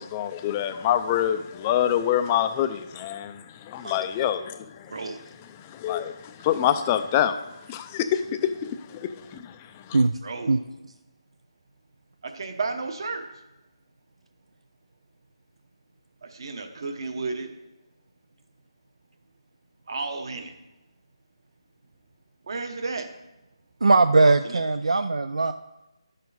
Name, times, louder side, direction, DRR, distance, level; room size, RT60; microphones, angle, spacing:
voice 1, 0.0-4.9 5.6-10.0, left 10 dB, 15° left, 9 dB, 0.3 m, -26 dB
voice 2, 10.2-10.6 12.2-13.3 16.2-17.5 19.9-20.5 22.4-23.1 24.4-24.6, right 3 dB, 50° right, 6 dB, 1.1 m, -32 dB
voice 3, 23.8-25.5, right 3 dB, 80° right, 11 dB, 0.4 m, -20 dB
10.5 x 6.6 x 4.1 m, 0.96 s
figure-of-eight pair, 165°, 3 cm